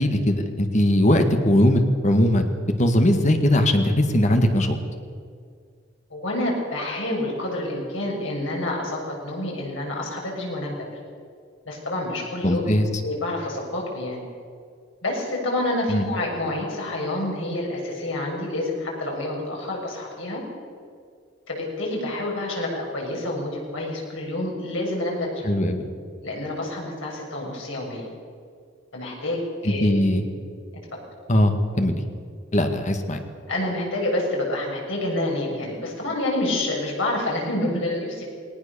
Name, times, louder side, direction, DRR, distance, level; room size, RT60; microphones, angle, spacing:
voice 1, 0.0-2.5 2.8-4.8 12.4-12.9 15.9-16.0 25.4-25.9 29.6-30.2 31.3-32.0 32.5-33.2, left 1 dB, 35° left, 6 dB, 1.8 m, -20 dB
voice 2, 6.1-10.9 11.7-12.7 13.0-14.2 15.0-20.4 21.5-25.4 26.2-28.1 28.9-30.0 33.5-38.3, left 1 dB, 75° left, -2 dB, 7.1 m, -28 dB
20.0 x 19.0 x 7.0 m, 2.2 s
head